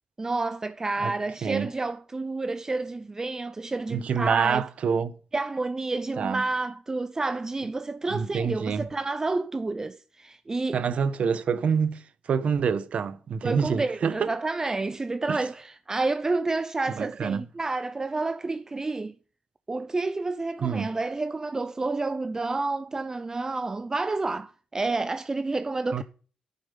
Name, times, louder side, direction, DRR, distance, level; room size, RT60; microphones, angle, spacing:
voice 1, 0.2-4.6 5.3-10.8 13.4-19.1 19.7-26.0, right 3 dB, 25° right, 0.6 m, -29 dB
voice 2, 3.9-5.2 6.2-6.4 8.1-8.9 10.7-14.3 15.3-15.4 16.9-17.4 20.6-20.9 25.9-26.0, right 6 dB, 60° right, 1.1 m, -27 dB
10.0 x 9.8 x 5.6 m
cardioid pair, 70°, 2 cm